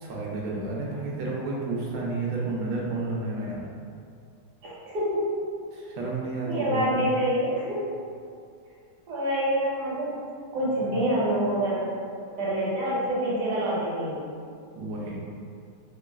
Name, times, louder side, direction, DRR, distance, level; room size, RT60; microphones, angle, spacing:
voice 1, 0.0-3.6 5.7-7.3 10.8-11.1 14.7-15.2, right 2 dB, 85° right, -4 dB, 0.7 m, -31 dB
voice 2, 4.6-5.3 6.4-7.9 9.1-10.1 10.5-11.9 12.4-14.2, equal, 65° right, -7 dB, 1.3 m, -26 dB
3.0 x 2.5 x 2.3 m, 2.3 s
omnidirectional pair, 2.0 m